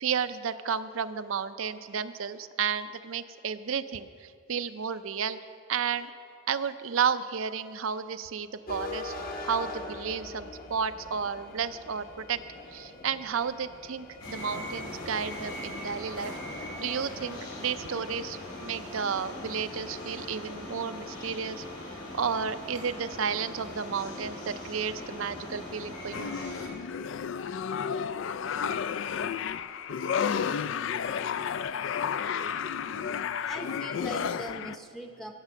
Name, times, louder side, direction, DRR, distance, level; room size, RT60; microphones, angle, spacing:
voice 1, 0.0-5.4 5.7-6.1 6.5-9.1 9.4-12.4 12.7-16.3 16.8-21.6 22.1-26.3, right 6 dB, 70° right, 13 dB, 0.5 m, -32 dB
sound 1, 8.7-27.3, left 2 dB, 40° left, 1.0 m, -46 dB
sound 2, 14.2-26.7, left 1 dB, 85° left, 3.8 m, -40 dB
sound 3, 26.1-34.8, left 7 dB, 60° left, 0.3 m, -32 dB
voice 2, 33.4-35.3, right 1 dB, ahead, 3 dB, 0.7 m, -41 dB
17.0 x 7.5 x 6.2 m, 2.4 s
head